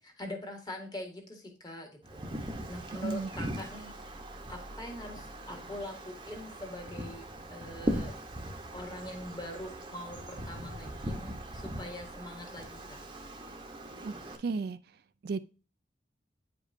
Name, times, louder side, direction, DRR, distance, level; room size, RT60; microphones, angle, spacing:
voice 1, 0.0-4.2 4.5-7.2 7.5-8.1 8.7-13.0, left 1 dB, 20° left, 3 dB, 1.7 m, -43 dB
Wind, 2.0-14.4, equal, 25° right, 0.9 m, -40 dB
voice 2, 14.4-14.8 15.2-15.4, right 4 dB, 55° right, 12 dB, 0.4 m, -33 dB
9.4 x 5.1 x 2.6 m, 0.35 s
head